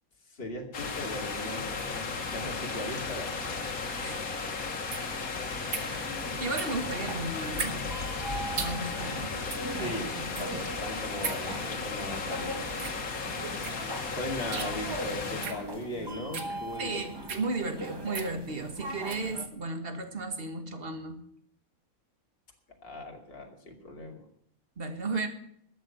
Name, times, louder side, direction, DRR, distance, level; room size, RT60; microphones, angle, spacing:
voice 1, 0.3-3.6 9.7-10.1 10.4-12.8 14.1-17.3 22.8-24.2, left 1 dB, 40° left, 1 dB, 2.6 m, -38 dB
sound 1, 0.7-15.5, left 4 dB, 80° left, 2.1 m, -35 dB
voice 2, 3.9-4.3 5.7-6.0 6.3-7.8 8.5-9.4 9.8-10.6 16.8-21.2 24.8-25.3, right 3 dB, 40° right, 7 dB, 1.9 m, -35 dB
sound 2, 3.9-19.3, right 5 dB, 75° right, 2.0 m, -41 dB
sound 3, 5.8-19.5, right 1 dB, 20° right, 1.4 m, -41 dB
13.0 x 8.3 x 8.9 m, 0.69 s
omnidirectional pair, 1.5 m